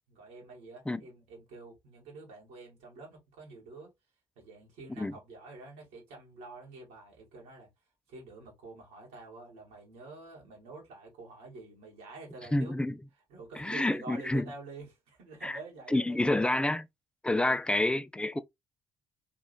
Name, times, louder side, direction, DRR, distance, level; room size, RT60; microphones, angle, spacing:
voice 1, 0.1-3.9 4.4-7.7 8.1-12.7 13.3-16.7 17.3-17.4, right 3 dB, 65° right, 2.0 m, -48 dB
voice 2, 12.5-13.0 13.6-14.5 15.4-15.6 15.9-16.8 17.2-18.4, left 1 dB, 5° left, 0.5 m, -28 dB
3.7 x 3.1 x 2.4 m
figure-of-eight pair, 45°, 14 cm